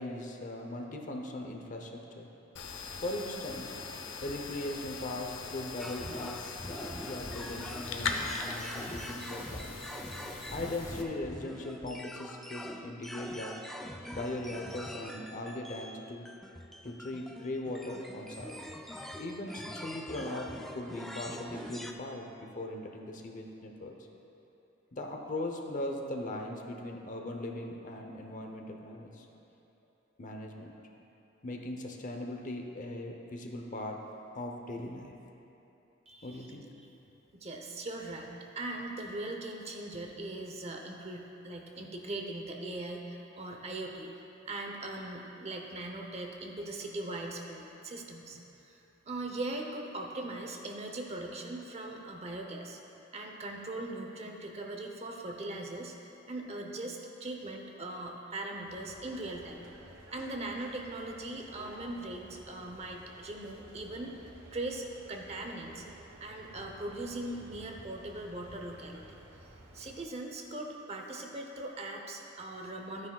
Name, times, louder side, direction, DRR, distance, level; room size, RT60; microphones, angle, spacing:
voice 1, 0.0-2.3 3.0-3.7 4.2-9.7 10.5-13.5 14.1-16.3 16.8-18.6 19.2-23.9 24.9-29.3 30.2-30.7 31.4-34.0 34.3-35.1 36.2-36.7, left 1 dB, 40° left, 2 dB, 0.7 m, -39 dB
sound 1, 2.6-11.0, left 4 dB, 75° left, 0.8 m, -40 dB
sound 2, 5.8-21.9, equal, ahead, 0.3 m, -44 dB
voice 2, 36.1-36.6 36.8-36.9 37.4-44.1 44.4-48.8 49.0-52.8 53.1-59.6 60.1-65.8 66.2-69.2 69.7-73.1, right 2 dB, 35° right, 2 dB, 0.8 m, -40 dB
sound 3, 58.7-70.0, right 1 dB, 70° right, 1.1 m, -53 dB
13.5 x 9.5 x 2.3 m, 3.0 s
head